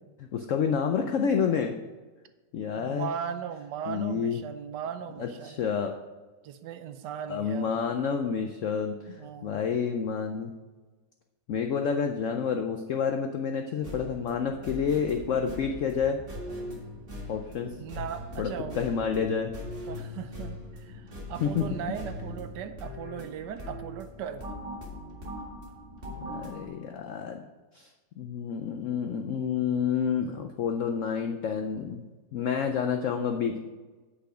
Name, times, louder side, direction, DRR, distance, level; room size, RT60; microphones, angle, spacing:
voice 1, 0.3-1.7 2.5-3.1 3.9-4.4 5.2-5.9 7.3-10.5 11.5-16.2 17.3-17.7 18.4-19.5 21.4-21.6 26.2-27.4 27.7-27.9 28.2-32.0 32.3-33.6, left 6 dB, 80° left, 5 dB, 0.7 m, -29 dB
voice 2, 2.8-5.6 6.4-7.9 9.2-9.7 17.8-18.8 19.9-24.4, right 8 dB, 75° right, 9 dB, 1.2 m, -38 dB
sound 1, 13.8-26.7, left 1 dB, 30° right, 2.0 m, -40 dB
8.3 x 6.2 x 4.9 m, 1.3 s
omnidirectional pair, 2.0 m